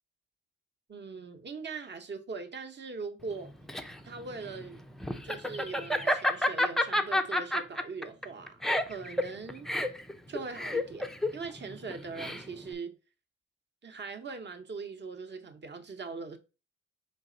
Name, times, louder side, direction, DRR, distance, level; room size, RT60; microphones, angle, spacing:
voice 1, 0.9-3.5 4.0-4.8 5.2-9.7 10.3-13.0 13.8-16.4, right 4 dB, 35° right, 0.8 m, -41 dB
Laughter, 3.3-12.7, left 1 dB, ahead, 0.4 m, -30 dB
4.0 x 3.3 x 3.8 m
cardioid pair, 90°, 30 cm